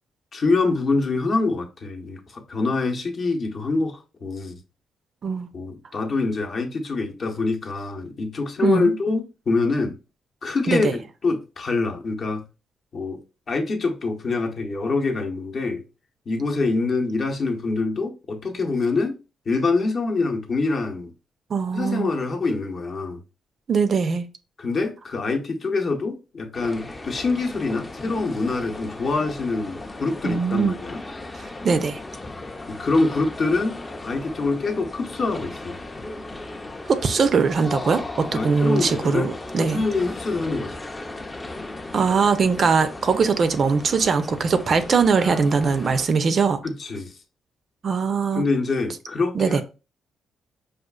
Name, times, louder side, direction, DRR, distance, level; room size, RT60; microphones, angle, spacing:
voice 1, 0.3-4.6 5.5-9.9 10.4-10.9 11.2-12.4 12.9-13.2 13.5-15.8 16.3-19.2 19.5-21.1 21.7-23.2 24.6-31.0 32.7-33.8 34.0-35.8 38.3-39.3 39.6-40.8 46.6-47.1 48.4-49.6, left 3 dB, 50° left, 0.7 m, -25 dB
voice 2, 8.6-8.9 10.7-10.9 21.5-22.1 23.7-24.3 30.2-30.7 31.4-32.0 36.9-39.8 41.9-46.6 47.8-48.4 49.3-49.6, right 5 dB, 50° right, 0.4 m, -21 dB
sound 1, 26.5-46.1, left 2 dB, 20° left, 0.4 m, -36 dB
4.9 x 2.4 x 2.2 m
cardioid pair, 95°, 0 cm